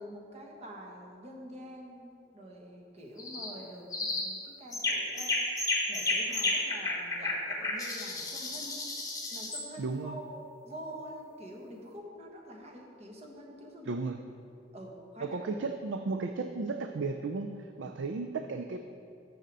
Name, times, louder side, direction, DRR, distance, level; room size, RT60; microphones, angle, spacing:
voice 1, 0.0-5.3 5.9-8.8 9.3-14.0 14.7-15.5 17.8-18.0, equal, 35° right, 0 dB, 1.3 m, -46 dB
sound 1, 3.2-3.5 3.9-4.3 4.7-9.7, left 2 dB, 20° left, 1.1 m, -32 dB
voice 2, 9.8-10.2 13.8-14.2 15.2-18.8, right 3 dB, 85° right, 7 dB, 0.4 m, -34 dB
6.6 x 6.5 x 7.4 m, 2.4 s
head